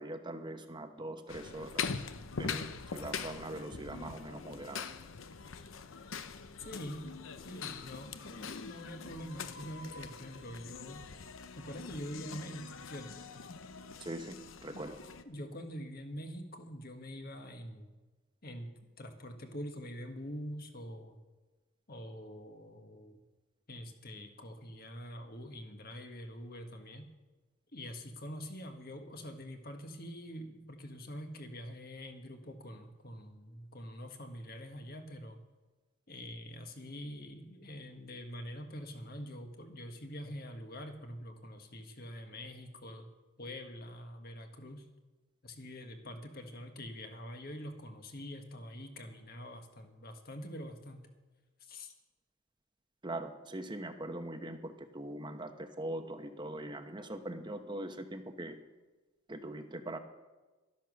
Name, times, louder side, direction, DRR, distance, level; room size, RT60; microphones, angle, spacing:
voice 1, 0.0-2.0 2.4-2.6 2.9-4.9 14.0-14.4 14.6-15.0 53.0-58.6 59.3-60.0, right 1 dB, 20° right, 7 dB, 1.0 m, -41 dB
sound 1, 1.3-15.2, left 5 dB, 75° left, 0.8 m, -43 dB
voice 2, 6.6-7.1 7.4-11.0 11.5-13.1 15.2-17.9 18.4-18.7 19.0-21.2 21.9-23.2 23.7-27.1 27.7-35.4 36.1-43.1 43.4-44.9 45.4-51.1 51.6-51.9, equal, 45° left, 5 dB, 1.6 m, -45 dB
13.0 x 10.5 x 6.3 m, 1.2 s
head